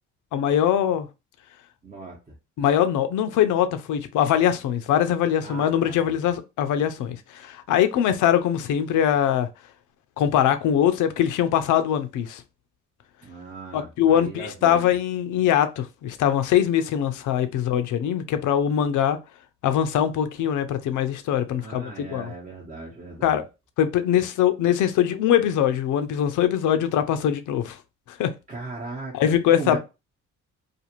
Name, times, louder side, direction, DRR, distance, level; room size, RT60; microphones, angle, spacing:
voice 1, 0.3-1.1 2.6-9.5 10.2-12.4 13.7-19.2 19.6-22.3 23.2-23.4 23.8-27.8 28.2-28.3 29.1-29.8, left 10 dB, 75° left, 0.5 m, -22 dB
voice 2, 1.8-2.4 5.4-6.2 13.2-15.0 21.6-23.4 28.5-29.8, right 3 dB, 25° right, 0.8 m, -38 dB
2.5 x 2.5 x 2.9 m
cardioid pair, 90°, 30 cm